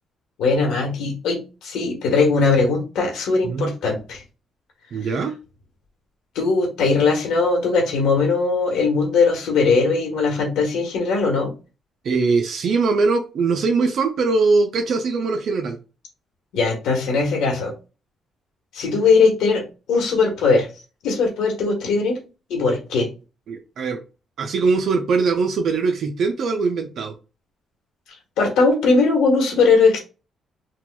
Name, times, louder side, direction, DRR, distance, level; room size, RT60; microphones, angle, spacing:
voice 1, 0.4-4.2 6.3-11.5 16.5-17.7 18.7-20.7 21.0-22.2 22.5-23.1 28.4-30.0, left 4 dB, 85° left, 0 dB, 1.3 m, -19 dB
voice 2, 4.9-5.3 12.0-15.8 23.5-24.0 24.4-27.1, right 4 dB, 65° right, 4 dB, 0.6 m, -21 dB
4.3 x 2.3 x 2.2 m, 0.31 s
cardioid pair, 90°, 0 cm